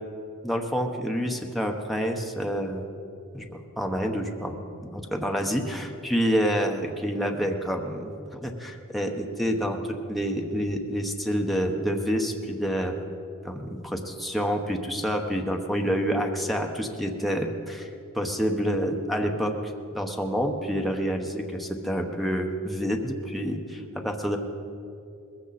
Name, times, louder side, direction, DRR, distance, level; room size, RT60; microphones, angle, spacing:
voice 1, 0.4-2.8 3.3-4.5 4.8-9.8 10.1-12.9 13.4-17.9 18.1-19.5 19.9-24.4, equal, ahead, 1 dB, 1.0 m, -28 dB
20.0 x 15.0 x 4.2 m, 2.7 s
head